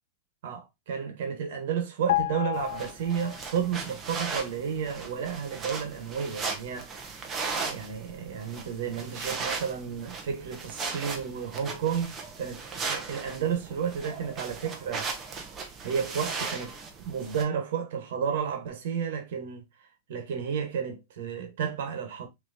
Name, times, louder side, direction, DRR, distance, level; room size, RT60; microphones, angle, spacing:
voice 1, 0.4-15.1 15.8-19.6 20.1-22.3, right 7 dB, 75° right, 1.3 m, -32 dB
sound 1, 2.1-3.7 4.0-4.2, left 17 dB, 85° left, 0.3 m, -31 dB
sound 2, 2.5-17.4, right 4 dB, 20° right, 0.9 m, -37 dB
5.8 x 3.0 x 2.6 m
supercardioid pair, 150°, 0 cm